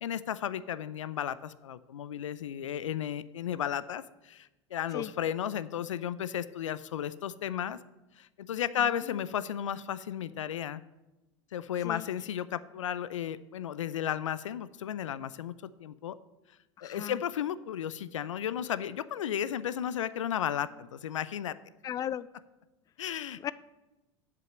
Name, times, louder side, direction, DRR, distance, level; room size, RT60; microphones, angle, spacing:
voice 1, 0.0-7.8 8.2-10.8 11.5-15.5 15.8-16.1 16.8-21.5 23.0-23.4, left 10 dB, 80° left, 15 dB, 0.5 m, -34 dB
voice 2, 8.8-9.2 11.8-12.1 16.8-17.2 21.8-22.3 23.4-23.5, left 10 dB, 25° left, 18 dB, 0.3 m, -37 dB
7.6 x 6.0 x 7.5 m, 1.0 s
hypercardioid pair, 90°, 16 cm